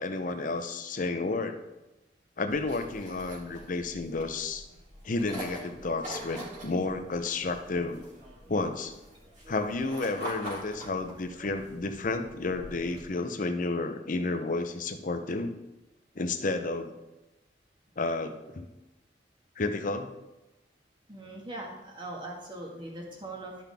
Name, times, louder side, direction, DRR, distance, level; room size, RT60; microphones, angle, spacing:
voice 1, 0.0-1.6 2.4-4.7 5.0-8.0 8.5-8.9 9.5-15.5 16.2-16.9 18.0-18.7 19.6-20.1, left 3 dB, 50° left, 7 dB, 0.7 m, -31 dB
sound 1, 2.5-13.1, right 1 dB, 45° right, 3.3 m, -45 dB
voice 2, 21.1-23.6, right 1 dB, 25° right, -2 dB, 1.8 m, -41 dB
12.0 x 5.9 x 3.5 m, 0.99 s
head